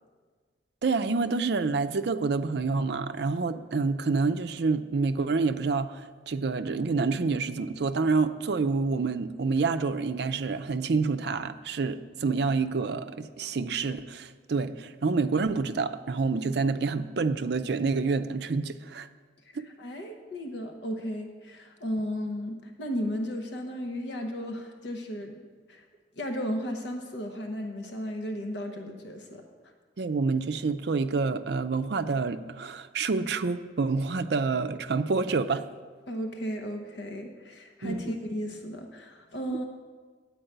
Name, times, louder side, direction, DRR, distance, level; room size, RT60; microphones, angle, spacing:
voice 1, 0.8-19.1 19.6-19.7 30.0-35.6 37.8-38.1 39.5-39.6, right 4 dB, 60° right, 10 dB, 0.4 m, -28 dB
voice 2, 19.6-25.4 25.7-25.8 26.2-29.4 36.1-39.6, equal, 70° left, 4 dB, 0.8 m, -34 dB
10.0 x 4.7 x 7.9 m, 1.5 s
head